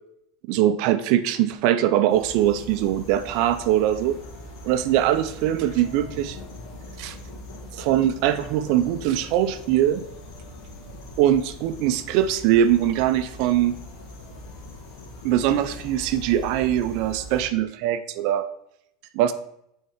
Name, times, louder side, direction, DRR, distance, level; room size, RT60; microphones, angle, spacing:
voice 1, 0.5-4.2 4.6-6.4 7.0-7.2 7.7-10.1 11.2-13.8 15.2-18.5 19.1-19.3, right 11 dB, 65° right, 11 dB, 0.4 m, -22 dB
sound 1, 2.1-17.4, left 1 dB, 70° left, 1.6 m, -41 dB
6.3 x 3.6 x 4.4 m, 0.76 s
supercardioid pair, 110°, 0 cm